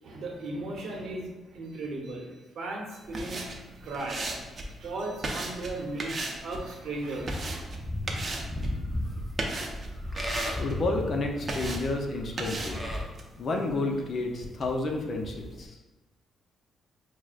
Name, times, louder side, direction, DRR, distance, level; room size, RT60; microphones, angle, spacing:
voice 1, 0.0-7.6, right 2 dB, 70° right, -1 dB, 0.8 m, -37 dB
sound 1, 3.0-15.7, right 2 dB, 40° right, 0.6 m, -38 dB
Livestock farm animals working animals, 7.1-13.0, left 1 dB, 5° left, 0.6 m, -35 dB
voice 2, 10.6-12.8 13.4-15.8, left 2 dB, 50° left, 2 dB, 0.6 m, -30 dB
6.0 x 2.1 x 2.4 m, 1.2 s
cardioid pair, 100°, 0 cm